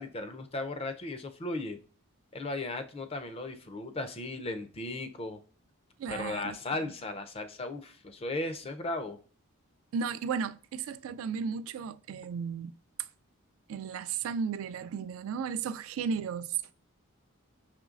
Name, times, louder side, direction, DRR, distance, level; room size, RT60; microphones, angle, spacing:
voice 1, 0.0-1.8 2.3-5.4 6.1-9.2, left 2 dB, 30° left, 0.4 m, -36 dB
voice 2, 6.0-6.6 6.8-6.9 9.9-12.7 13.7-16.7, right 6 dB, 75° right, 0.3 m, -34 dB
5.0 x 3.1 x 2.4 m
head